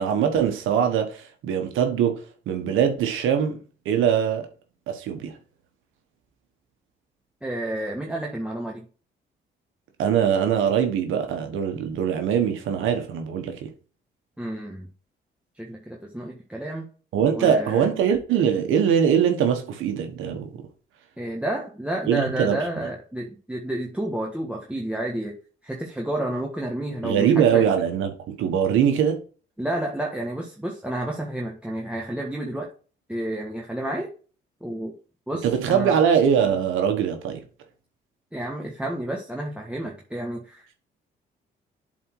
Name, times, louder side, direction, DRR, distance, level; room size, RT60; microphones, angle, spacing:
voice 1, 0.0-4.5 4.9-5.4 10.0-13.7 17.1-20.5 22.1-22.6 27.0-29.2 35.4-37.4, right 8 dB, 85° right, 1.3 m, -22 dB
voice 2, 7.4-8.8 14.4-14.9 15.5-16.9 17.3-17.9 21.2-25.3 25.6-27.6 29.6-32.7 33.1-34.1 34.6-34.9 35.3-36.0 38.3-40.9, right 1 dB, 5° right, 1.6 m, -30 dB
7.7 x 4.3 x 4.7 m
cardioid pair, 90°, 20 cm